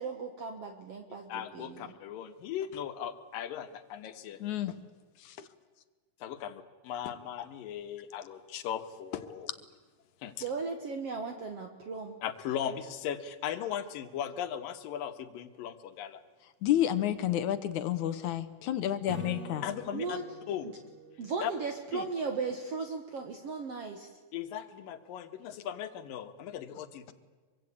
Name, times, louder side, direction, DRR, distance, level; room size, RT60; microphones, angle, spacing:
voice 1, 0.0-1.9 10.4-12.2 19.9-20.2 21.2-24.1, right 4 dB, 55° right, 5 dB, 2.2 m, -36 dB
voice 2, 1.3-4.4 5.2-5.4 6.2-9.5 10.2-10.5 12.2-16.2 19.6-20.2 20.5-20.7 21.4-21.5 21.9-22.1 24.3-27.1, left 9 dB, 85° left, 9 dB, 3.1 m, -38 dB
voice 3, 4.4-4.7 5.3-5.4 16.6-19.6, left 12 dB, 70° left, 12 dB, 2.3 m, -30 dB
Acoustic guitar / Strum, 19.1-22.4, right 4 dB, 85° right, 6.0 m, -48 dB
24.5 x 24.0 x 8.6 m, 1.4 s
omnidirectional pair, 3.9 m